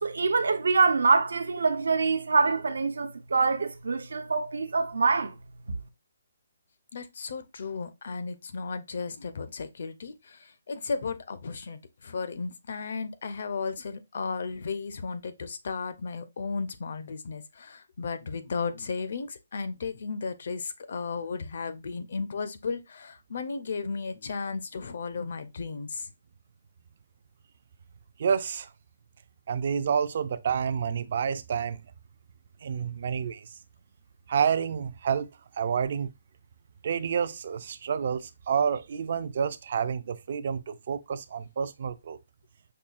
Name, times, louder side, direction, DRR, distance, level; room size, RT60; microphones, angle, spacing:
voice 1, 0.0-5.3, right 4 dB, 85° right, 0.6 m, -25 dB
voice 2, 6.9-26.1, left 4 dB, 45° left, 0.5 m, -35 dB
voice 3, 28.2-28.7 29.5-31.8 32.6-33.5 34.3-35.3 35.6-36.1 36.8-42.2, right 7 dB, 35° right, 0.3 m, -29 dB
5.4 x 2.3 x 2.4 m
hypercardioid pair, 175°, 0 cm